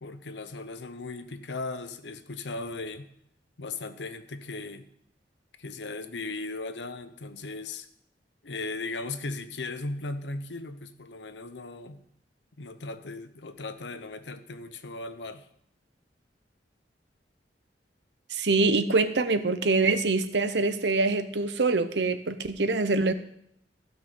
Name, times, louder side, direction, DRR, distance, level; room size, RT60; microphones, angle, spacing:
voice 1, 0.0-3.1 3.6-4.9 5.6-7.9 8.4-12.0 12.6-15.5, left 3 dB, 80° left, 11 dB, 0.9 m, -37 dB
voice 2, 18.3-23.1, right 3 dB, 75° right, 11 dB, 0.8 m, -24 dB
15.0 x 6.1 x 5.4 m, 0.72 s
head